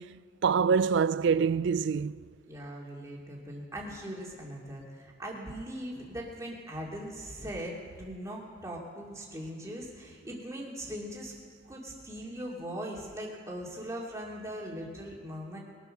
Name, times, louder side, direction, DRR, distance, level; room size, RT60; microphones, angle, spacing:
voice 1, 0.0-2.3, right 6 dB, 55° right, 0.3 m, -26 dB
voice 2, 2.5-11.3 11.7-15.6, equal, 15° right, 2.5 m, -40 dB
21.5 x 8.2 x 6.4 m
head